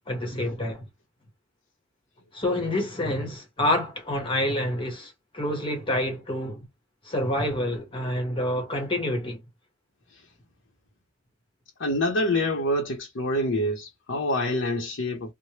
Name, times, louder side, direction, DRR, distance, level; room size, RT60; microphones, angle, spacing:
voice 1, 0.1-0.8 2.3-6.7 7.0-9.4, left 1 dB, 25° left, 1.0 m, -28 dB
voice 2, 11.8-15.3, left 1 dB, 70° left, 0.7 m, -26 dB
3.2 x 2.1 x 2.8 m
head